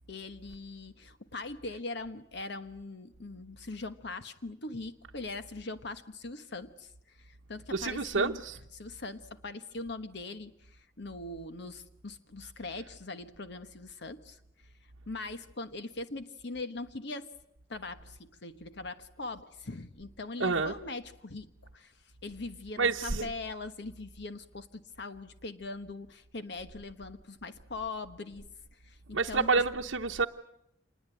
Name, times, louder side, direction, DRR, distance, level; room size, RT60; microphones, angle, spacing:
voice 1, 0.1-6.9 7.2-8.4 8.7-14.4 15.1-17.3 17.7-21.5 21.7-21.9 22.2-28.4 28.8-29.5, left 3 dB, 60° left, 1.2 m, -41 dB
voice 2, 7.7-8.6 20.4-20.7 22.8-23.3 29.1-30.3, right 4 dB, 85° right, 0.9 m, -28 dB
27.0 x 21.0 x 9.1 m
head